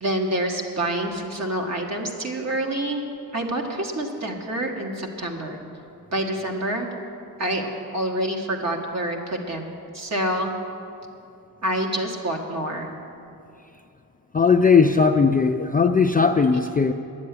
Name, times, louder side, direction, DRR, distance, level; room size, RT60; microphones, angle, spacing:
voice 1, 0.0-3.0 3.3-5.6 6.1-6.9 7.4-10.5 11.6-12.9, right 1 dB, 45° right, 2 dB, 1.7 m, -27 dB
voice 2, 14.3-16.9, left 5 dB, 25° left, 5 dB, 0.3 m, -18 dB
10.5 x 7.6 x 9.7 m, 2.6 s
wide cardioid pair, 115°, 37 cm